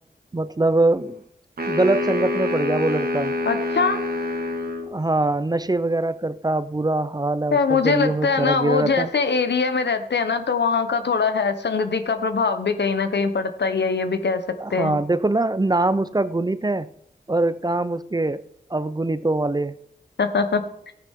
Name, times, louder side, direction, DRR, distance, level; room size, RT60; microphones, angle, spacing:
voice 1, 0.3-1.2 1.7-3.3 4.9-9.1 14.6-16.9 17.3-19.8, right 2 dB, 25° right, 14 dB, 0.5 m, -23 dB
sound 1, 1.6-4.9, left 2 dB, 60° right, 1.7 m, -26 dB
voice 2, 3.5-4.0 7.5-14.4 14.7-15.0 20.2-20.9, left 5 dB, 85° left, 8 dB, 1.0 m, -22 dB
14.5 x 9.8 x 3.7 m, 0.72 s
wide cardioid pair, 65°, 17 cm